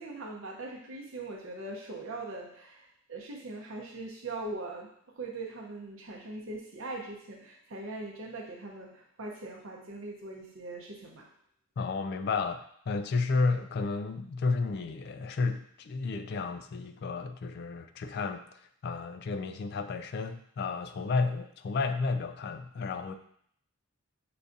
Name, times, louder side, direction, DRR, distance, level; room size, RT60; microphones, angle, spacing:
voice 1, 0.0-11.3, right 2 dB, 70° right, -1 dB, 0.7 m, -41 dB
voice 2, 11.8-18.4 18.8-23.2, left 4 dB, 50° left, 8 dB, 0.3 m, -32 dB
6.6 x 2.3 x 2.6 m, 0.66 s
head